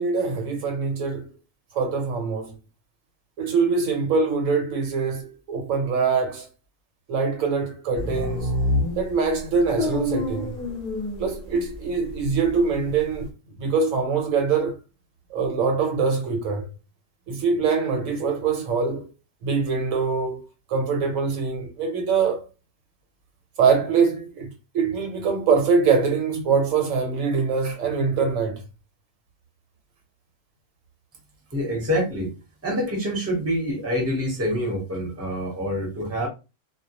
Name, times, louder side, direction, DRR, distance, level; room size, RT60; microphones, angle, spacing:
voice 1, 0.0-1.3 1.7-2.6 3.4-6.5 7.1-8.5 9.0-10.5 11.2-13.3 13.6-14.8 15.3-16.7 17.3-19.1 19.4-20.4 20.7-22.5 23.6-28.6, right 5 dB, 75° right, 1.0 m, -23 dB
sound 1, 7.9-11.8 12.1-13.3, left 1 dB, 40° left, 0.6 m, -27 dB
voice 2, 31.5-32.3 32.6-36.3, equal, 15° right, 0.7 m, -26 dB
2.2 x 2.1 x 2.8 m
omnidirectional pair, 1.4 m